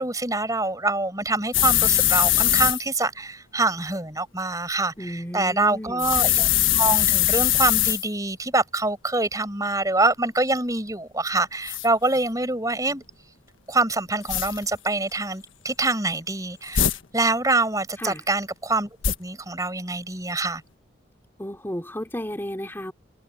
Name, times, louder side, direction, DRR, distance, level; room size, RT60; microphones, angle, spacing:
voice 1, 0.0-6.5 6.7-13.0 13.7-16.9 17.1-18.9 19.2-20.6, right 2 dB, 15° right, 5.4 m, -25 dB
sound 1, 1.5-2.8 6.0-8.1 11.7-11.9 14.3-14.6 16.7-17.0 19.0-19.1, left 12 dB, 85° left, 1.3 m, -21 dB
voice 2, 5.0-6.2 18.0-18.2 21.4-22.9, equal, 10° left, 3.0 m, -33 dB
head